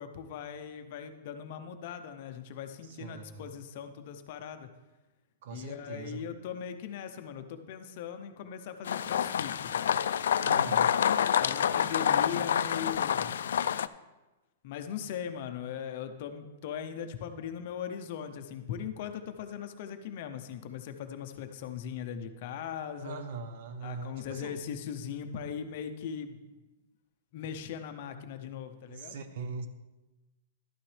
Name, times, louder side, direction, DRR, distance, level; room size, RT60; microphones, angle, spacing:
voice 1, 0.0-4.7 5.5-10.0 10.7-10.8 11.4-13.3 14.6-23.2 23.8-26.4 27.3-29.3, left 8 dB, 40° left, 8 dB, 0.6 m, -39 dB
voice 2, 2.9-3.5 5.4-6.3 10.4-10.9 23.0-24.6 28.9-29.7, right 4 dB, 45° right, 10 dB, 0.7 m, -41 dB
sound 1, 8.9-13.9, left 9 dB, 90° left, 0.3 m, -27 dB
12.0 x 9.0 x 3.3 m, 1.1 s
supercardioid pair, 175°, 0 cm